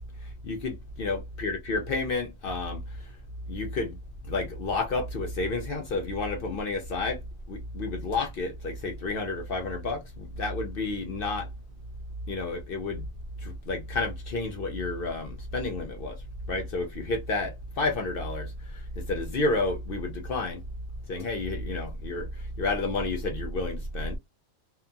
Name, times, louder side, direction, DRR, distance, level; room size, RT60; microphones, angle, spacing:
voice 1, 0.4-2.8 3.5-4.0 4.3-7.2 7.5-11.5 12.3-13.1 13.4-16.2 16.5-18.5 19.0-20.6 21.1-22.3 22.6-24.2, left 3 dB, 55° left, 0.7 m, -30 dB
2.8 x 2.2 x 2.5 m
omnidirectional pair, 1.4 m